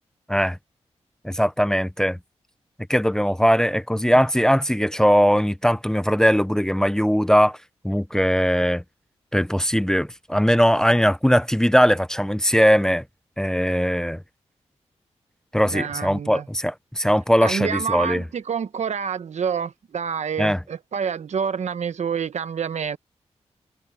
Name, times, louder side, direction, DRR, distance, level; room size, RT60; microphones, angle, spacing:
voice 1, 1.2-2.2 2.9-7.6 7.8-8.8 9.3-13.0 13.4-14.2 15.5-18.2 20.4-20.6, equal, 5° left, 0.7 m, -20 dB
voice 2, 15.7-16.5 17.4-23.0, right 7 dB, 75° right, 1.1 m, -28 dB
cardioid pair, 55°, 12 cm